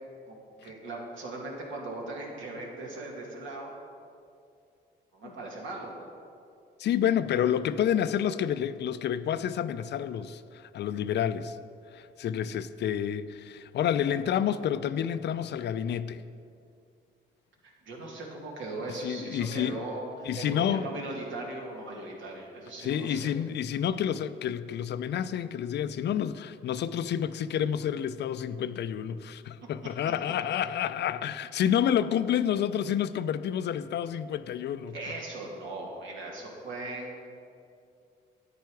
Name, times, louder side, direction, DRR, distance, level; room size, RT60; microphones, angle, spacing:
voice 1, 0.3-3.7 5.1-6.0 17.6-23.3 34.9-37.3, right 2 dB, 75° right, -1 dB, 2.2 m, -39 dB
voice 2, 6.8-10.4 10.7-11.6 11.9-16.2 19.0-19.9 20.2-20.9 22.8-34.9, left 9 dB, 60° left, 13 dB, 0.4 m, -29 dB
9.4 x 9.1 x 4.7 m, 2.5 s
cardioid pair, 90°, 20 cm